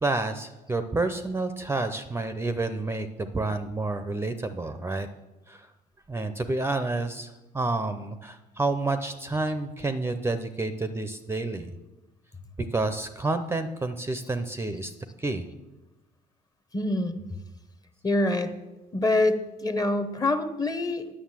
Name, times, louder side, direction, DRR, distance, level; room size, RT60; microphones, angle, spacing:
voice 1, 0.0-5.1 5.5-5.7 6.1-11.7 12.7-14.9 15.2-15.5, right 2 dB, 15° right, 9 dB, 0.6 m, -29 dB
voice 2, 16.7-17.2 18.0-18.5 18.9-21.1, left 2 dB, 20° left, 9 dB, 0.9 m, -25 dB
9.4 x 6.4 x 7.5 m, 1.1 s
cardioid pair, 110°, 17 cm